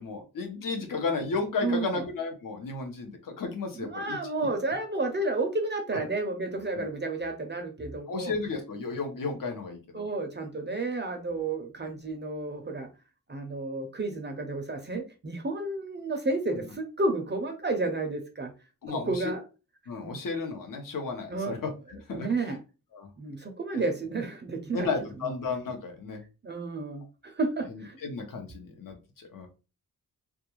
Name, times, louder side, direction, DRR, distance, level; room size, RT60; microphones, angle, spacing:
voice 1, 0.0-4.2 6.8-6.9 8.1-10.0 18.8-19.3 19.9-21.6 21.9-22.3 22.9-23.1 23.7-23.9 24.7-26.2 27.7-29.5, left 4 dB, 65° left, 4 dB, 0.8 m, -33 dB
voice 2, 1.6-2.0 3.8-8.3 9.9-12.9 13.3-18.5 18.9-19.4 20.0-20.1 21.3-21.6 22.1-22.6 23.2-24.9 26.4-28.0, right 2 dB, 30° right, 5 dB, 0.4 m, -31 dB
2.3 x 2.3 x 3.0 m, 0.31 s
wide cardioid pair, 135°, 36 cm